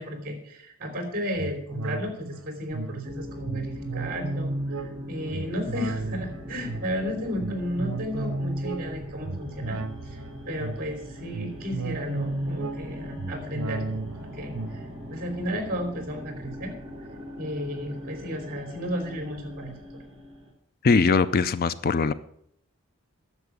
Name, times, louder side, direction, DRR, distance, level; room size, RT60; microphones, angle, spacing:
voice 1, 0.0-9.8 10.0-16.7 17.4-20.0, equal, 40° right, 3.3 m, -33 dB
sound 1, 1.4-17.1 17.5-17.6, right 2 dB, 80° right, 0.8 m, -35 dB
sound 2, 3.0-20.5, equal, 20° right, 2.7 m, -41 dB
voice 2, 20.8-22.1, left 4 dB, 40° left, 0.4 m, -21 dB
10.5 x 7.3 x 8.3 m
head